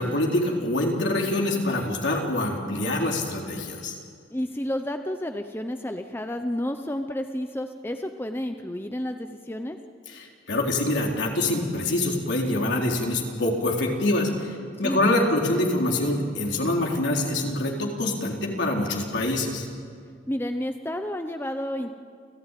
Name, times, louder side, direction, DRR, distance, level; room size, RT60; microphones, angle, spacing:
voice 1, 0.0-3.9 10.1-19.6, left 1 dB, 70° left, 0 dB, 4.1 m, -25 dB
voice 2, 4.3-9.8 14.8-15.0 20.3-21.9, left 1 dB, 10° left, 6 dB, 0.8 m, -30 dB
29.5 x 15.5 x 9.2 m, 2.1 s
head